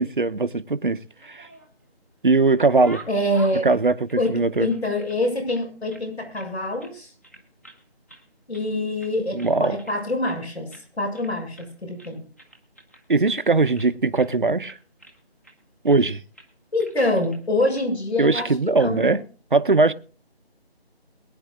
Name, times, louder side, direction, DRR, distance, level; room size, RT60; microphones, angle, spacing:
voice 1, 0.0-1.5 2.2-3.0 3.6-4.7 9.3-9.8 13.1-14.8 15.8-16.2 18.2-19.2 19.5-19.9, right 3 dB, 50° right, 0.9 m, -20 dB
sound 1, 1.1-1.9 2.3-5.2 5.5-6.5 6.8-7.0 7.2-7.8 8.1-8.7 9.0-10.0 10.3-10.4 10.7-10.9 11.1-11.7 12.0-13.9 14.2-14.3 14.6-15.5 15.9-16.1 16.3-16.5 16.8-17.4 17.7-17.8 18.8-19.1, right 1 dB, 15° left, 1.0 m, -47 dB
voice 2, 3.1-3.7 4.2-7.1 8.5-10.7 11.0-12.2 16.7-18.5 18.8-19.2, left 1 dB, 75° left, 6.7 m, -25 dB
22.5 x 9.7 x 2.5 m
figure-of-eight pair, 175°, 32 cm